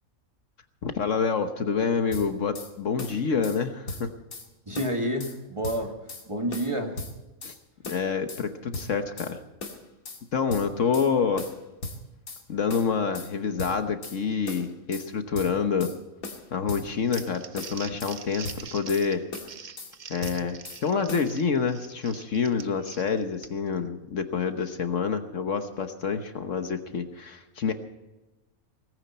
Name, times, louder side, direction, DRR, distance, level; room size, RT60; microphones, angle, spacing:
voice 1, 0.8-4.1 7.4-7.5 7.8-9.4 10.3-11.5 12.5-15.9 16.5-19.3 20.1-27.7, left 5 dB, 60° left, 7 dB, 1.4 m, -27 dB
sound 1, 2.1-2.7 3.0-3.6 3.9-4.5 4.8-5.4 5.6-6.2 6.5-7.6 7.8-8.4 8.7-9.3 9.6-10.2 10.5-11.1 11.4-12.4 12.7-13.3 13.6-14.2 14.5-15.1 15.3-16.0 16.2-17.3 17.6-18.2 18.4-19.0 19.3-19.9 20.2-20.8 21.1-21.3, left 2 dB, 85° left, 2.5 m, -38 dB
voice 2, 4.7-6.0 6.3-7.0, right 1 dB, 20° right, 3 dB, 1.8 m, -29 dB
Crumpling crinkling, 16.9-23.8, right 6 dB, 45° right, 0.7 m, -44 dB
18.5 x 15.5 x 4.3 m, 1.0 s
omnidirectional pair, 1.5 m